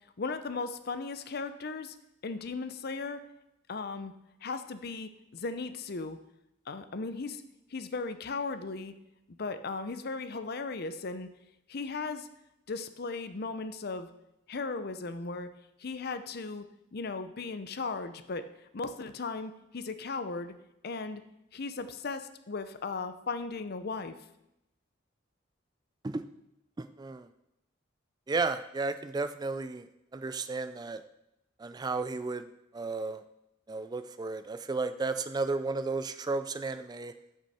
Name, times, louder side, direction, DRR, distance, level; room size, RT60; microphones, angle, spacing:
voice 1, 0.2-2.0 2.2-3.2 3.7-4.1 4.4-6.2 6.7-7.4 7.7-8.9 9.3-11.3 11.7-12.3 12.7-14.1 14.5-15.5 15.8-16.6 16.9-18.5 18.7-20.5 20.8-21.2 21.5-24.2, left 4 dB, 50° left, 11 dB, 0.6 m, -36 dB
voice 2, 26.8-27.3 28.3-29.9 30.1-31.0 31.6-32.5 32.7-33.2 33.7-37.1, right 3 dB, 20° right, 11 dB, 0.3 m, -33 dB
13.5 x 6.2 x 4.3 m, 0.87 s
head